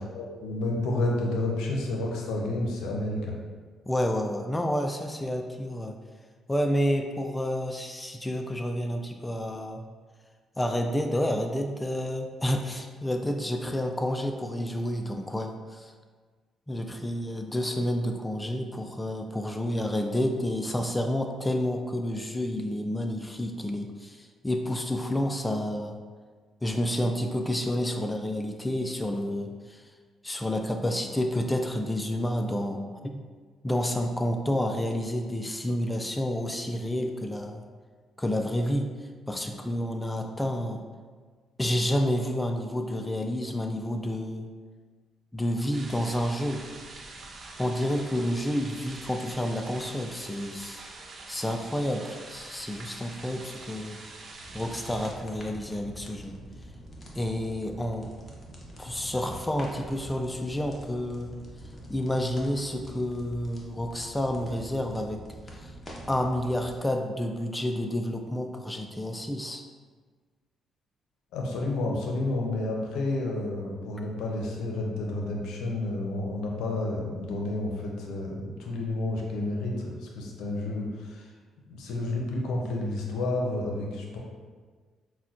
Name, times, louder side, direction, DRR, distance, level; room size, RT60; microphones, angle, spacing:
voice 1, 0.1-3.3 71.3-81.3 81.7-84.2, left 2 dB, 90° left, 0 dB, 0.6 m, -30 dB
voice 2, 3.9-6.0 6.5-9.8 10.6-15.9 16.7-26.0 26.6-29.8 30.2-33.2 33.6-37.6 38.2-38.9 39.3-40.8 41.6-44.5 45.3-46.7 47.6-50.9 51.3-54.0 54.5-56.4 57.1-58.1 58.8-61.3 61.9-65.2 65.5-65.7 66.1-69.6, left 1 dB, 10° left, 3 dB, 0.3 m, -29 dB
sound 1, 45.7-55.1, right 3 dB, 50° right, 0.5 m, -45 dB
sound 2, 54.4-66.8, equal, 30° left, 0.7 m, -45 dB
5.6 x 2.2 x 2.4 m, 1.5 s
cardioid pair, 90°, 0 cm